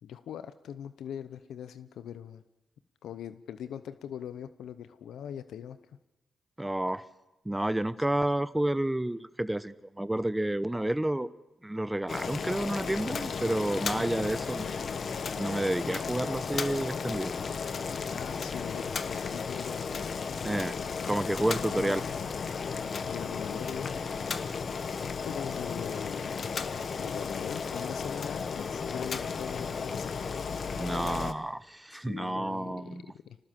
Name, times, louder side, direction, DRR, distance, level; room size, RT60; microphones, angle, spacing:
voice 1, 0.0-2.4 3.0-5.8 18.1-19.9 21.5-23.9 25.0-26.5 27.0-30.1 31.9-33.4, left 9 dB, 90° left, 13 dB, 0.7 m, -41 dB
voice 2, 6.6-7.0 7.4-11.3 11.6-14.9 15.4-17.3 20.4-20.8 21.0-22.0 30.8-33.0, right 1 dB, 10° right, 16 dB, 0.8 m, -30 dB
Boiling, 12.1-31.3, left 5 dB, 60° left, 1.2 m, -34 dB
25.5 x 19.0 x 7.5 m, 1.0 s
cardioid pair, 65°, 0 cm